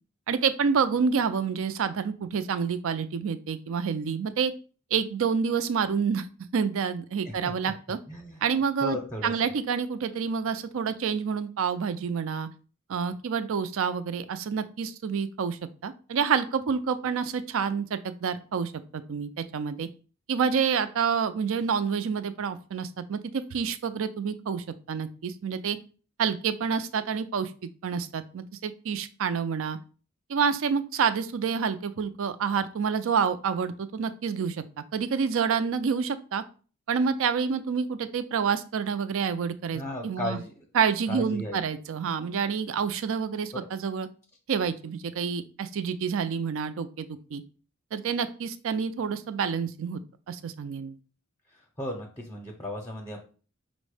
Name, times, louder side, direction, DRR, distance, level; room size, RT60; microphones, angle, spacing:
voice 1, 0.3-4.5 4.9-6.3 6.5-8.0 8.4-9.0 9.2-12.5 12.9-19.9 20.3-25.8 26.2-27.5 27.8-29.8 30.3-34.6 34.9-36.4 36.9-40.4 40.7-44.1 44.5-47.4 47.9-50.0 50.3-51.0, right 6 dB, 65° right, 12 dB, 0.4 m, -28 dB
voice 2, 8.1-8.4 8.8-9.3 39.7-40.7 41.1-41.6 43.5-43.7 51.8-53.2, left 1 dB, 15° left, 1 dB, 0.7 m, -35 dB
5.1 x 2.1 x 4.8 m, 0.38 s
head